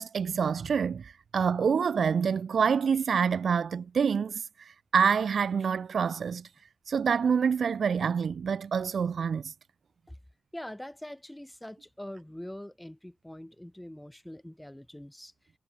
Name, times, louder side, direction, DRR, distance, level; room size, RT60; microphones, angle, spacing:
voice 1, 0.0-4.4 4.9-6.4 6.9-9.5, right 6 dB, 65° right, 0.4 m, -26 dB
voice 2, 10.5-15.3, left 1 dB, 5° left, 5.6 m, -43 dB
wide cardioid pair, 155°, 0 cm